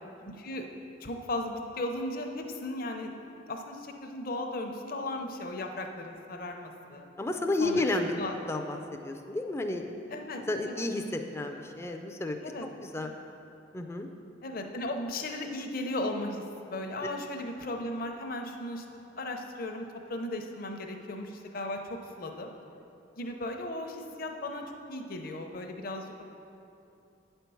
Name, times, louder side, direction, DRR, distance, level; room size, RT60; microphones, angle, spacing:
voice 1, 0.2-0.7 1.0-3.1 3.5-7.1 7.6-7.9 8.2-8.4 10.1-10.8 11.4-11.5 12.4-12.7 13.0-13.1 14.4-16.4 16.7-18.8 19.2-22.5 23.2-24.6 24.9-26.2, left 1 dB, 50° left, 4 dB, 0.7 m, -36 dB
voice 2, 7.2-8.1 8.5-9.9 10.5-12.4 12.8-13.1 13.7-14.1, left 2 dB, 15° left, 4 dB, 0.4 m, -31 dB
9.1 x 4.5 x 6.9 m, 2.8 s
head